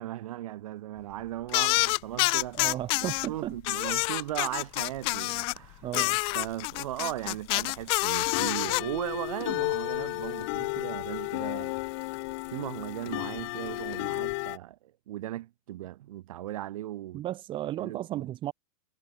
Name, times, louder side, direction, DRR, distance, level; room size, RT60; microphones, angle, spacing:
voice 1, 0.0-2.7 3.0-5.9 6.3-11.8 12.5-17.2 17.8-18.3, right 14 dB, 65° right, 5.1 m, -37 dB
sound 1, 1.0-2.8 3.1-3.6 3.9-14.6, left 26 dB, 45° left, 1.6 m, -34 dB
sound 2, 1.5-3.3 3.6-5.6 5.9-8.8, left 27 dB, 30° left, 0.4 m, -27 dB
voice 2, 2.5-3.6 5.8-6.2 17.1-18.5, right 13 dB, 25° right, 2.2 m, -34 dB
supercardioid pair, 150°, 19 cm